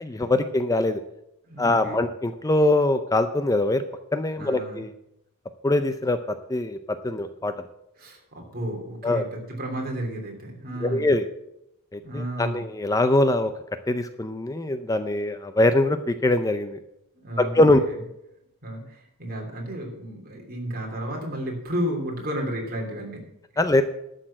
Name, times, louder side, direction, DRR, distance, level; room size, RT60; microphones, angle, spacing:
voice 1, 0.0-1.0 1.6-3.8 4.1-4.9 5.6-7.5 9.0-9.2 10.8-11.2 11.9-13.5 13.9-16.8 17.4-17.8 23.6-23.8, left 2 dB, 15° left, 10 dB, 0.5 m, -23 dB
voice 2, 1.4-2.0 4.4-4.8 8.0-11.1 12.0-12.6 17.1-18.0 18.6-23.2, equal, 45° right, 0 dB, 3.2 m, -32 dB
11.5 x 6.7 x 7.5 m, 0.82 s
head